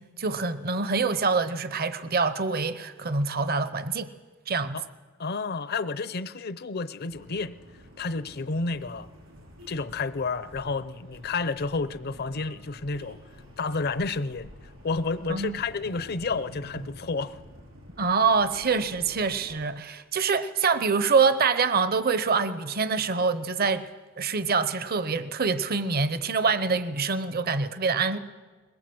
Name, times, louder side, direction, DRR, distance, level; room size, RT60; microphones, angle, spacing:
voice 1, 0.0-4.1 4.5-4.8 15.3-15.6 18.0-23.8 24.2-28.2, right 4 dB, 50° right, 0.9 m, -25 dB
voice 2, 5.2-7.6 8.0-9.1 9.7-13.2 13.6-14.5 14.8-17.4, left 4 dB, 50° left, 0.7 m, -30 dB
sound 1, 7.1-19.7, equal, 75° right, 4.9 m, -49 dB
21.5 x 21.0 x 7.9 m
head